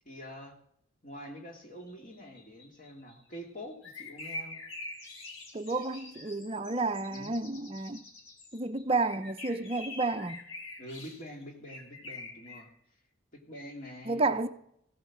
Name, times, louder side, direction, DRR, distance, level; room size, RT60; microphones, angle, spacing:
voice 1, 0.0-0.6 1.0-4.6 7.1-7.4 10.8-12.7 13.3-14.5, equal, 40° left, 2.7 m, -46 dB
sound 1, 1.9-12.6, left 2 dB, 75° left, 3.4 m, -45 dB
voice 2, 5.5-8.0 8.5-10.4 14.1-14.5, right 3 dB, 25° right, 0.6 m, -31 dB
16.0 x 8.9 x 7.4 m
head